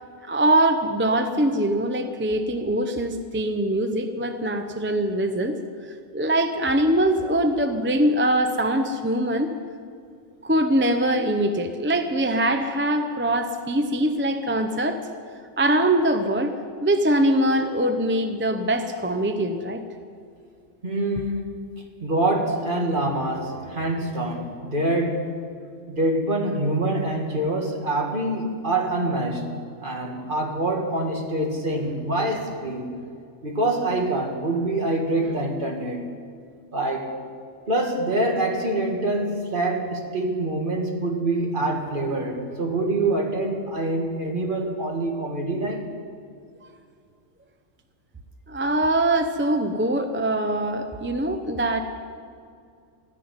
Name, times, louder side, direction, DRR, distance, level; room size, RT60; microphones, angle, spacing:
voice 1, 0.2-5.6 6.1-9.5 10.4-15.0 15.6-16.5 16.8-19.8 22.5-22.6 48.5-51.8, right 1 dB, 15° right, 6 dB, 0.5 m, -23 dB
voice 2, 20.8-25.3 25.9-29.4 29.8-32.9 33.4-36.0 36.7-37.1 37.7-45.9, right 2 dB, 40° right, 1 dB, 2.0 m, -25 dB
14.0 x 10.5 x 9.6 m, 2.3 s
omnidirectional pair, 1.3 m